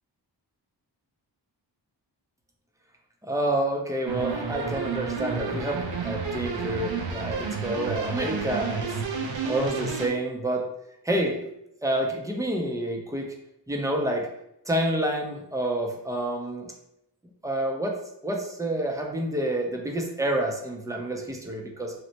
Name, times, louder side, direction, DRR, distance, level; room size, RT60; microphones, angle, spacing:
voice 1, 3.2-9.0 9.4-10.6 11.0-11.4 11.8-13.3 13.7-14.3 14.7-16.7 17.4-18.0 18.2-21.9, right 1 dB, 10° right, 1 dB, 0.4 m, -28 dB
sound 1, 4.1-10.1, right 5 dB, 80° right, 0.5 m, -31 dB
3.0 x 2.0 x 2.7 m, 0.79 s
wide cardioid pair, 85°, 44 cm